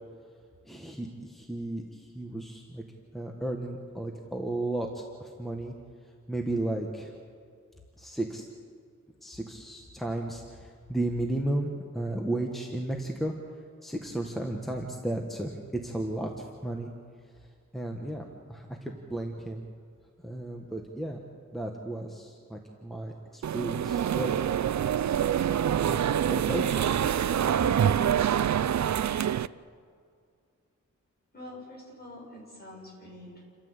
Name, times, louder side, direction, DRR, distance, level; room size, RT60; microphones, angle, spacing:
voice 1, 0.7-2.8 3.1-5.7 6.3-7.1 8.0-8.4 9.2-13.3 13.8-16.3 16.6-16.9 17.7-19.7 20.2-21.2 21.5-24.4 25.7-27.0, right 1 dB, ahead, 1 dB, 1.5 m, -34 dB
sound 1, 23.4-29.5, right 9 dB, 65° right, 0.5 m, -26 dB
voice 2, 31.3-33.4, left 1 dB, 30° left, -3 dB, 6.9 m, -45 dB
29.0 x 13.5 x 8.1 m, 2.2 s
wide cardioid pair, 150°, 31 cm